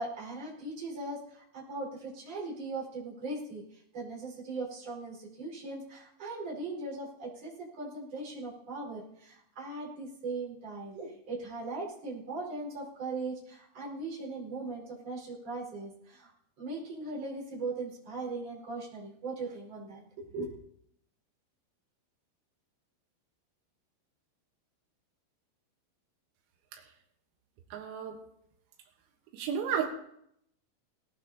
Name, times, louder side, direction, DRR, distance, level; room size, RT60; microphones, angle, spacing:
voice 1, 0.0-16.3 16.6-20.0 20.3-20.5, right 3 dB, 30° right, -5 dB, 6.0 m, -39 dB
voice 2, 27.7-28.2 29.3-29.9, right 7 dB, 85° right, 2 dB, 4.1 m, -32 dB
20.0 x 19.0 x 2.9 m, 0.74 s
omnidirectional pair, 5.9 m